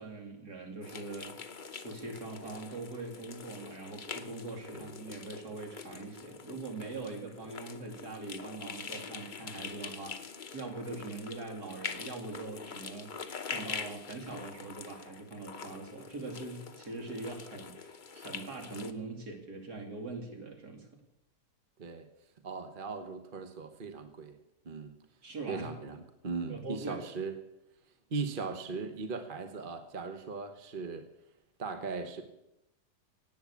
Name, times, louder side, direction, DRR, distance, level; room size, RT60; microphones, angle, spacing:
voice 1, 0.0-1.4 1.7-10.2 10.5-13.1 13.5-20.9 25.2-25.7 26.5-27.0, right 3 dB, 65° right, 2 dB, 3.2 m, -42 dB
sound 1, 0.8-18.9, left 5 dB, 40° left, 0.8 m, -44 dB
voice 2, 22.4-24.4 24.6-24.9 25.5-27.3 28.1-31.1 31.6-32.2, right 4 dB, 35° right, 7 dB, 1.2 m, -38 dB
17.5 x 8.6 x 8.4 m, 0.88 s
omnidirectional pair, 1.8 m